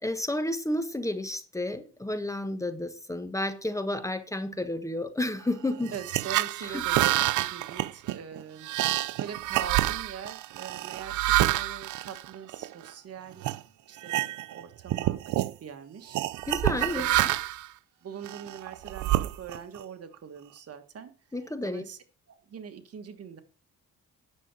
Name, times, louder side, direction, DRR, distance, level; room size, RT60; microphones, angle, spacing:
voice 1, 0.0-5.9 6.7-6.8 16.5-17.0 21.3-21.8, left 1 dB, 10° left, 1.3 m, -31 dB
voice 2, 5.9-8.7 9.2-13.5 13.9-16.2 16.8-17.2 18.0-21.1 21.6-23.4, right 7 dB, 55° right, 1.6 m, -43 dB
sound 1, 5.9-12.9 13.4-13.6 14.0-14.6 14.9-15.5 16.1-17.7 18.2-19.8, right 16 dB, 75° right, 0.6 m, -28 dB
9.9 x 6.8 x 6.1 m
cardioid pair, 90°, 30 cm